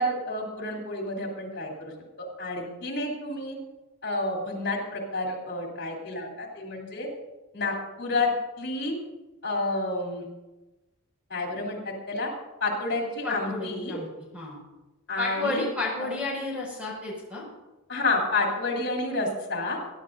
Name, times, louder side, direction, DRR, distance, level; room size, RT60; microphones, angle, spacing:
voice 1, 0.0-1.9 2.2-3.6 4.0-7.1 7.5-8.3 8.6-9.0 9.4-10.3 11.3-12.3 12.6-14.0 15.1-15.6 16.0-16.1 17.9-19.8, left 2 dB, 55° left, 0 dB, 3.4 m, -29 dB
voice 2, 13.2-14.1 14.3-14.6 15.2-17.4, left 2 dB, 5° right, -4 dB, 5.6 m, -31 dB
22.5 x 11.5 x 2.7 m, 1.1 s
head